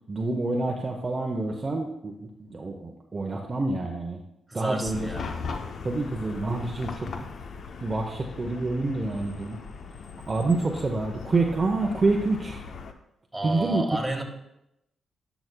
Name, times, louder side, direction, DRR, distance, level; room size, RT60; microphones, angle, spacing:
voice 1, 0.1-4.2 4.5-5.1 5.8-7.1 7.8-9.6 10.3-12.6 13.4-13.8, right 3 dB, 35° right, 1 dB, 0.7 m, -27 dB
voice 2, 4.5-5.5 13.3-14.2, right 1 dB, 10° right, 2 dB, 1.4 m, -31 dB
Chatter / Car passing by / Traffic noise roadway noise, 4.8-12.9, left 5 dB, 65° left, 0.6 m, -39 dB
10.5 x 5.9 x 2.2 m, 0.84 s
cardioid pair, 65°, 0 cm